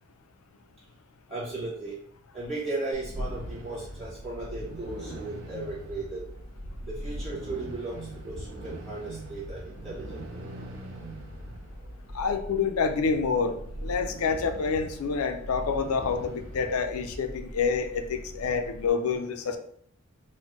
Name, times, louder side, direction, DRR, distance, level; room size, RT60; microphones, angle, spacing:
voice 1, 1.3-2.0 2.3-6.3 6.9-10.4, right 2 dB, 25° right, -9 dB, 1.0 m, -36 dB
sound 1, 2.9-18.9, right 1 dB, 75° right, 0.8 m, -40 dB
voice 2, 12.1-19.6, left 5 dB, 85° left, 7 dB, 0.4 m, -28 dB
3.9 x 2.1 x 3.0 m, 0.63 s
head